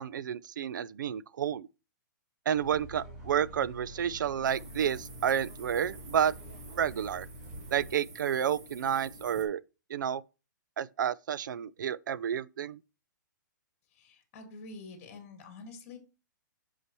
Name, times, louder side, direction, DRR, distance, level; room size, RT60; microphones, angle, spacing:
voice 1, 0.0-1.7 2.5-6.4 6.7-7.3 7.7-9.6 9.9-10.2 10.8-12.8, right 9 dB, 70° right, 0.4 m, -30 dB
sound 1, 2.5-7.9, right 1 dB, 10° right, 3.8 m, -47 dB
sound 2, 4.4-9.4, right 1 dB, 50° right, 2.0 m, -49 dB
voice 2, 13.9-16.0, left 3 dB, 25° left, 1.9 m, -47 dB
8.2 x 5.7 x 3.1 m
hypercardioid pair, 180°, 10 cm